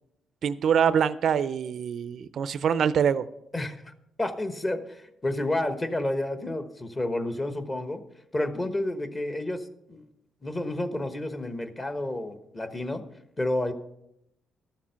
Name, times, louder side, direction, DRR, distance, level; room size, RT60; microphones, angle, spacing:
voice 1, 0.4-3.3, right 7 dB, 60° right, 15 dB, 0.4 m, -24 dB
voice 2, 3.5-8.0 8.3-10.1 10.4-13.0 13.4-13.7, left 1 dB, 25° left, 9 dB, 1.1 m, -30 dB
12.5 x 7.3 x 5.7 m, 0.81 s
cardioid pair, 90°, 0 cm